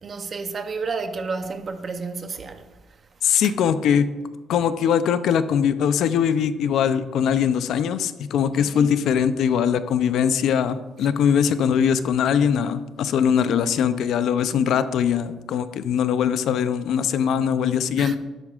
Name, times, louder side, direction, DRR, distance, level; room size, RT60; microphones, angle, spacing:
voice 1, 0.0-2.7 3.4-3.5 3.9-4.0 8.5-8.9 17.9-18.2, right 4 dB, 30° right, 0.7 m, -31 dB
voice 2, 3.2-4.1 4.5-18.2, left 8 dB, 65° left, 0.5 m, -21 dB
12.5 x 11.0 x 2.4 m
cardioid pair, 170°, 0 cm